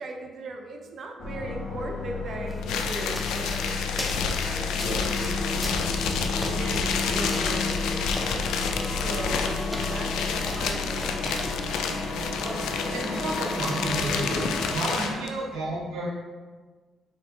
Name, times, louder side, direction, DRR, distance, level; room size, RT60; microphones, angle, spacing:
voice 1, 0.0-5.9 6.4-7.9 8.2-12.7 14.9-15.3, right 2 dB, 55° right, 3 dB, 0.6 m, -39 dB
sound 1, 1.2-14.8, left 3 dB, 45° left, 0.9 m, -32 dB
sound 2, 2.5-11.4, left 1 dB, 5° left, 0.7 m, -40 dB
sound 3, 2.6-15.3, left 6 dB, 85° left, 0.4 m, -30 dB
voice 2, 4.7-5.1 8.9-9.2 12.4-12.5 12.9-16.2, right 1 dB, 90° right, -3 dB, 0.8 m, -32 dB
4.4 x 3.5 x 2.9 m, 1.4 s
cardioid pair, 90°, 0 cm